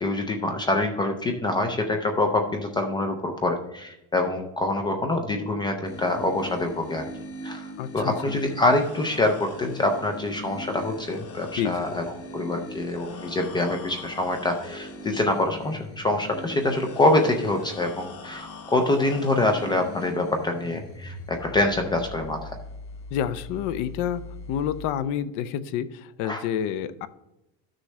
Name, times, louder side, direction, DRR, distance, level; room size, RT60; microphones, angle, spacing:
voice 1, 0.0-7.1 7.4-7.7 7.9-22.6 26.2-26.4, left 2 dB, 15° left, 4 dB, 0.4 m, -25 dB
sound 1, 5.8-24.9, left 2 dB, 40° left, 1.4 m, -40 dB
voice 2, 7.8-8.3 11.6-11.9 23.1-27.1, left 9 dB, 60° left, 15 dB, 0.6 m, -29 dB
13.0 x 6.3 x 3.2 m, 0.88 s
cardioid pair, 180°, 35 cm